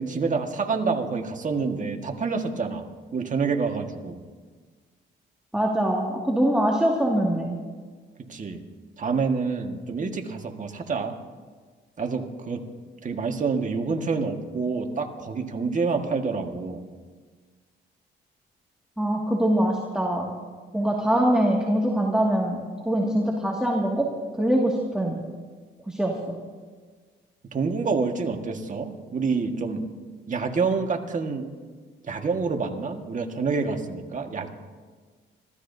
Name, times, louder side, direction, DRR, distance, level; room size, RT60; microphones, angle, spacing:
voice 1, 0.0-2.8 3.1-4.2 8.3-8.6 9.0-11.1 12.0-12.6 13.0-16.8 27.5-29.8 30.3-31.5 32.1-34.5, right 4 dB, 40° right, 4 dB, 1.7 m, -27 dB
voice 2, 5.5-7.6 19.0-20.3 20.7-24.1 24.3-25.2 25.9-26.4, right 1 dB, 5° right, -2 dB, 2.2 m, -23 dB
25.0 x 15.5 x 2.8 m, 1.5 s
cardioid pair, 90°, 20 cm